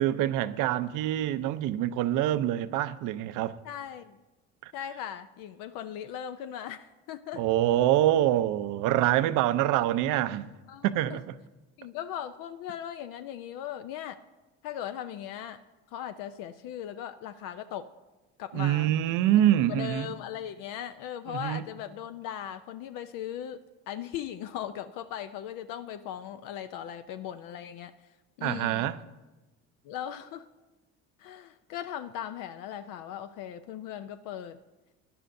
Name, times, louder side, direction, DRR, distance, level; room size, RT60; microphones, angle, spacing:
voice 1, 0.0-3.6 4.6-4.7 7.3-10.5 10.8-11.4 18.5-20.1 21.3-21.6 28.4-29.0, right 13 dB, 65° right, 0.6 m, -25 dB
voice 2, 3.6-4.2 4.7-7.4 10.7-11.2 11.8-14.2 14.6-15.6 15.9-17.9 18.4-19.0 19.7-23.6 23.9-27.9 28.4-28.9 29.8-30.5 31.2-34.6, left 10 dB, 65° left, 0.6 m, -38 dB
17.0 x 10.5 x 2.6 m
supercardioid pair, 80°, 35 cm